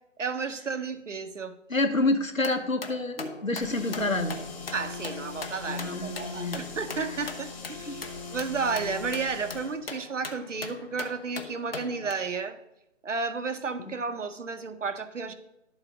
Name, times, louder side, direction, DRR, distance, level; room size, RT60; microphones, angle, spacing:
voice 1, 0.2-1.5 4.7-8.0 8.3-12.6 13.0-15.3, right 4 dB, 65° right, 9 dB, 0.9 m, -32 dB
voice 2, 1.7-4.4 5.7-6.6 7.9-8.0 13.8-13.9, left 2 dB, 90° left, 6 dB, 1.2 m, -28 dB
sound 1, 2.4-12.1, left 4 dB, 45° left, 0.9 m, -41 dB
sound 2, 3.6-9.8, left 4 dB, 25° left, 1.6 m, -41 dB
11.5 x 4.0 x 5.0 m, 0.87 s
figure-of-eight pair, 150°, 39 cm